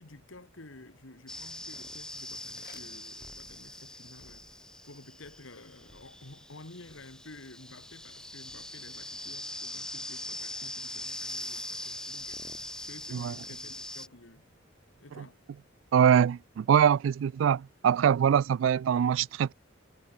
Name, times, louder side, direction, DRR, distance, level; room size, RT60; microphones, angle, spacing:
voice 1, 0.0-14.5 15.0-15.4, left 2 dB, 80° left, 2.2 m, -52 dB
sound 1, 1.3-14.1, left 1 dB, 5° left, 0.5 m, -42 dB
sound 2, 2.4-3.8, left 7 dB, 55° left, 3.0 m, -58 dB
voice 2, 15.9-19.5, right 8 dB, 75° right, 0.3 m, -23 dB
head